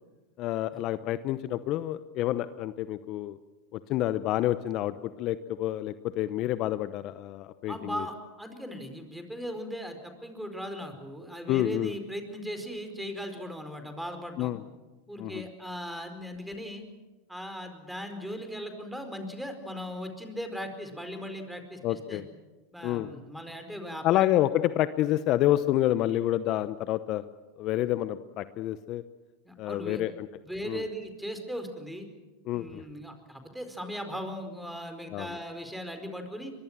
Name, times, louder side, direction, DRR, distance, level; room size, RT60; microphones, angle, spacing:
voice 1, 0.4-3.4 3.7-8.1 11.5-11.9 14.4-14.6 15.2-15.4 21.8-22.2 22.8-23.1 24.0-27.2 27.6-29.0 29.6-30.3 30.6-30.8 32.5-32.8 35.1-35.4, left 14 dB, 45° left, 14 dB, 0.8 m, -28 dB
voice 2, 7.7-14.6 15.1-16.8 17.3-22.2 22.7-24.2 29.4-30.0 30.4-32.1 32.5-36.5, equal, ahead, 6 dB, 4.6 m, -38 dB
23.0 x 23.0 x 7.4 m, 1.2 s
hypercardioid pair, 100°, 0 cm